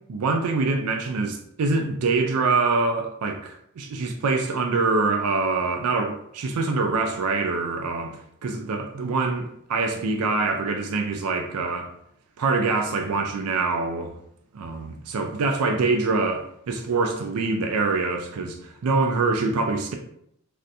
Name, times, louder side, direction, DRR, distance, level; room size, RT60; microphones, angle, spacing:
voice 1, 0.1-11.9 12.4-14.2 14.5-19.9, right 3 dB, 85° right, 0.4 m, -25 dB
3.3 x 2.5 x 2.7 m
head